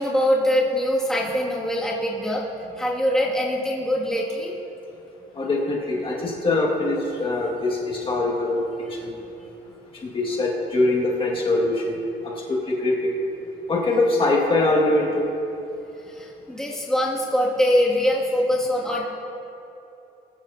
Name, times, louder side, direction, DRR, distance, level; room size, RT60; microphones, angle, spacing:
voice 1, 0.0-2.4 2.8-4.5 16.1-19.0, equal, 5° left, -5 dB, 2.3 m, -23 dB
voice 2, 5.4-8.6 9.0-9.1 10.0-11.8 12.7-13.1 13.7-15.3, left 2 dB, 30° left, -3 dB, 2.0 m, -22 dB
21.0 x 12.0 x 2.8 m, 2.9 s
cardioid pair, 110°, 17 cm